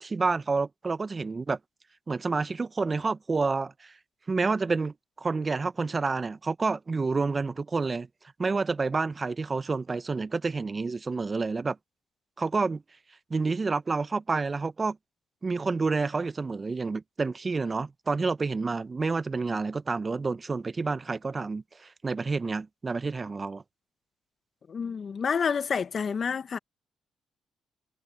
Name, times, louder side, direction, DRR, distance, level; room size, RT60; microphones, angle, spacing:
voice 1, 0.0-1.6 2.1-3.9 4.3-8.1 8.4-11.8 12.4-12.8 13.3-15.0 15.4-23.6, right 4 dB, 35° right, 1.1 m, -29 dB
voice 2, 24.7-26.6, left 6 dB, 55° left, 1.2 m, -29 dB
supercardioid pair, 50°, 0 cm